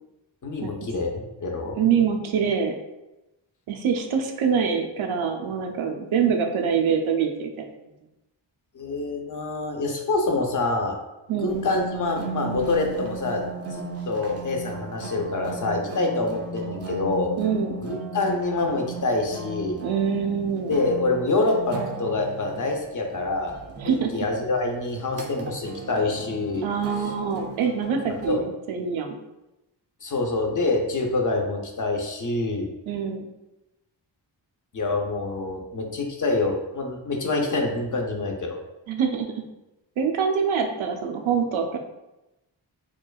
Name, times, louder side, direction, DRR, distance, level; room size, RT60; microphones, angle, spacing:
voice 1, 0.4-1.8 8.7-11.0 11.4-13.4 13.7-17.3 17.8-19.8 20.7-23.6 23.8-26.6 28.1-28.4 30.0-32.7 34.7-38.6, left 3 dB, 45° left, 2 dB, 0.6 m, -26 dB
voice 2, 1.8-2.7 3.7-7.7 11.3-11.6 17.4-17.7 19.8-20.7 23.8-24.1 26.6-29.2 32.9-33.3 38.9-39.3 40.0-41.8, right 6 dB, 90° right, 3 dB, 0.6 m, -25 dB
sound 1, 11.5-28.3, right 3 dB, 35° right, 0.4 m, -36 dB
4.5 x 2.3 x 2.3 m, 0.96 s
wide cardioid pair, 105°, 46 cm